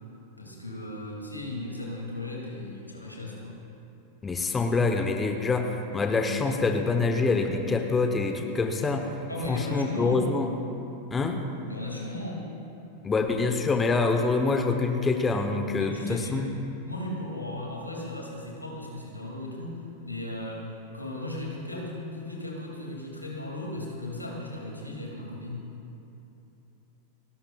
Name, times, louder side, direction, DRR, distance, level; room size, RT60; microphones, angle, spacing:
voice 1, 0.4-3.6 9.3-10.4 11.7-12.5 15.8-16.5 16.9-25.7, left 1 dB, 85° left, -2 dB, 2.5 m, -36 dB
voice 2, 4.2-9.1 9.5-10.5 11.1-11.5 13.0-16.5, left 4 dB, 15° left, 5 dB, 0.9 m, -26 dB
30.0 x 11.5 x 2.4 m, 2.9 s
figure-of-eight pair, 90°, 0 cm